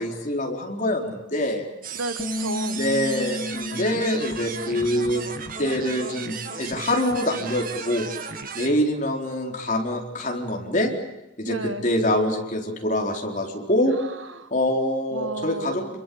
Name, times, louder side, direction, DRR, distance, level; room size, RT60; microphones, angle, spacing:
voice 1, 0.0-1.6 2.7-5.2 5.6-8.1 8.5-10.9 11.4-13.9 14.5-16.0, left 1 dB, 35° left, 1 dB, 4.3 m, -25 dB
sound 1, 1.8-8.7, right 5 dB, 45° right, 1.9 m, -35 dB
voice 2, 1.9-2.8 11.4-11.9 13.9-14.5 15.1-16.0, right 1 dB, 70° right, 10 dB, 1.6 m, -33 dB
Bass guitar, 2.2-8.4, left 1 dB, 15° left, 1.3 m, -35 dB
29.0 x 22.5 x 8.7 m, 0.96 s
head